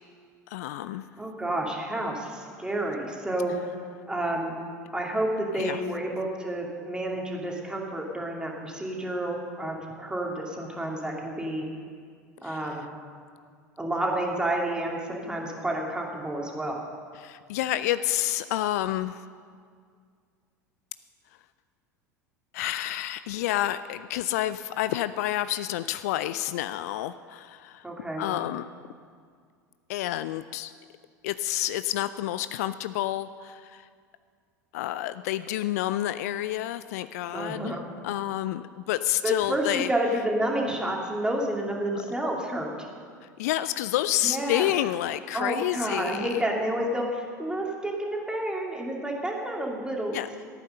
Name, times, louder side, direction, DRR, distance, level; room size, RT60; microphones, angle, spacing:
voice 1, 0.5-1.1 5.5-5.8 12.4-12.8 17.2-19.3 22.5-27.9 28.2-28.7 29.9-30.7 31.2-33.9 34.7-37.8 38.0-39.9 43.2-46.4 50.1-50.3, left 14 dB, 60° left, 13 dB, 0.4 m, -29 dB
voice 2, 1.2-3.5 4.1-4.5 4.9-11.7 12.4-12.9 13.8-16.8 27.8-28.3 37.3-37.8 39.2-42.7 44.2-44.7 45.3-50.2, right 1 dB, 10° right, -1 dB, 2.6 m, -30 dB
14.5 x 9.0 x 6.6 m, 2.1 s
figure-of-eight pair, 75°, 10 cm